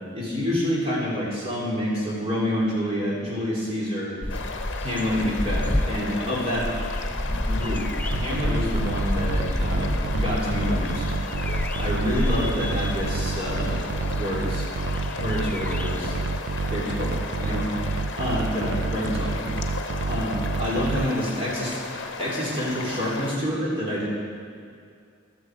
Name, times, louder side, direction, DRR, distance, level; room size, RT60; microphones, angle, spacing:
voice 1, 0.1-4.2 4.8-6.7 7.2-7.8 8.1-11.0 11.7-13.8 14.2-14.7 15.1-16.2 16.7-17.7 18.1-19.5 20.1-21.8 22.2-24.1, equal, 25° right, -5 dB, 3.3 m, -28 dB
sound 1, 4.2-17.1 17.4-17.5, left 1 dB, 10° left, 0.4 m, -30 dB
sound 2, 4.3-23.4, left 3 dB, 60° left, 0.9 m, -35 dB
sound 3, 8.1-21.1, right 3 dB, 50° right, 0.4 m, -29 dB
14.0 x 12.5 x 4.7 m, 2.3 s
head